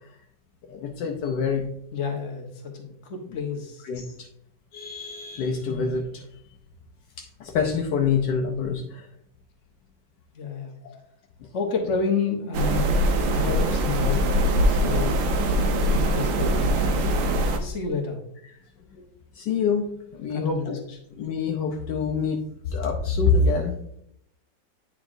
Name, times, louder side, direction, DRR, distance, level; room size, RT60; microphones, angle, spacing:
voice 1, 0.7-1.7 3.8-4.3 4.7-6.3 7.2-9.1 12.8-13.0 18.5-18.6 18.9-19.1 19.3-20.8 21.1-23.8, left 5 dB, 75° left, 1 dB, 1.3 m, -26 dB
voice 2, 1.9-3.8 10.3-10.7 11.5-13.0 13.3-14.3 14.7-15.2 15.9-16.9 17.6-18.2 20.3-20.8, left 5 dB, 45° left, 1 dB, 1.3 m, -30 dB
sound 1, 12.5-17.6, equal, 90° right, 1.5 m, -22 dB
9.2 x 4.9 x 2.6 m, 0.71 s
omnidirectional pair, 2.0 m